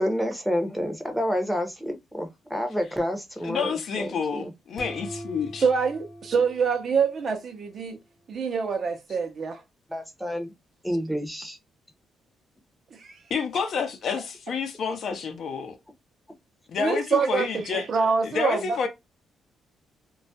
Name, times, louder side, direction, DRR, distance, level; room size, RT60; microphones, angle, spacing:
voice 1, 0.0-3.7 4.0-4.1 9.9-10.5 10.8-11.6, equal, ahead, 0.7 m, -28 dB
voice 2, 3.4-5.7 13.3-15.8 16.7-17.9 18.2-18.9, left 6 dB, 60° left, 0.5 m, -29 dB
sound 1, 4.8-7.5, equal, 25° left, 0.8 m, -42 dB
voice 3, 5.6-8.0 8.3-9.6 13.0-13.2 16.8-18.9, right 5 dB, 50° right, 0.5 m, -25 dB
2.2 x 2.0 x 2.7 m
cardioid pair, 90°, 0 cm